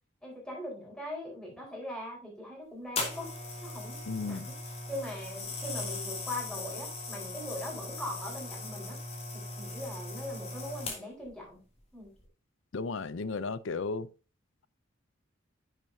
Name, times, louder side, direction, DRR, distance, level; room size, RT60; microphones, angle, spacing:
voice 1, 0.2-9.0 9.3-11.6 11.9-12.1, left 1 dB, 5° left, 4.5 m, -41 dB
sound 1, 3.0-11.3 12.0-12.2, left 2 dB, 30° left, 2.7 m, -39 dB
voice 2, 4.1-4.5 12.7-14.1, left 4 dB, 75° left, 0.6 m, -34 dB
10.0 x 7.5 x 2.8 m
head